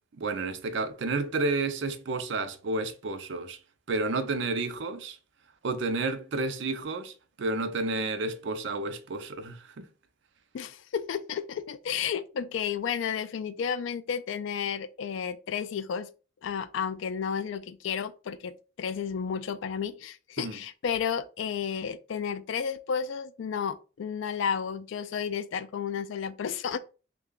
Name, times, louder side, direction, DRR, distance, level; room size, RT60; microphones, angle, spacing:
voice 1, 0.1-3.6 3.9-5.2 5.6-9.9 20.4-20.6, right 3 dB, 60° right, 0.4 m, -31 dB
voice 2, 10.5-16.1 16.4-26.8, left 7 dB, 70° left, 0.3 m, -32 dB
3.2 x 2.2 x 3.7 m
head